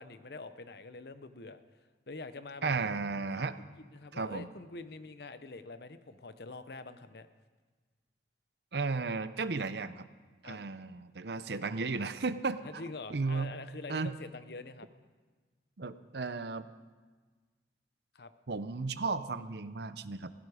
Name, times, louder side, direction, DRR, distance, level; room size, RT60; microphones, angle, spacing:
voice 1, 0.0-1.8 2.1-2.7 3.3-3.5 3.8-7.3 10.4-10.6 12.6-14.9 18.1-18.3, left 3 dB, 60° left, 11 dB, 0.8 m, -45 dB
voice 2, 2.6-3.6 4.1-4.5 8.7-10.1 10.4-12.6 13.1-13.5 13.9-14.1 15.8-16.7 18.5-20.3, right 4 dB, 65° right, 13 dB, 0.7 m, -34 dB
16.5 x 16.0 x 4.9 m, 1.4 s
head